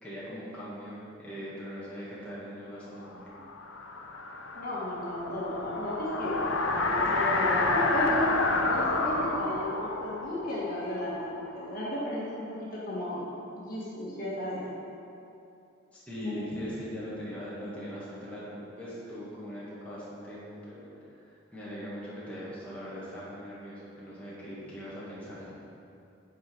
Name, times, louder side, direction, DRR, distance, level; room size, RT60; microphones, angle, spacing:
voice 1, 0.0-3.2 16.1-25.5, equal, 5° left, -10 dB, 1.8 m, -41 dB
sound 1, 3.2-11.9, left 3 dB, 80° left, 0.7 m, -30 dB
voice 2, 4.5-6.4 6.7-8.3 8.6-13.2 13.5-14.7 16.2-16.4, equal, 45° left, -7 dB, 1.7 m, -34 dB
9.4 x 4.9 x 5.3 m, 2.7 s
head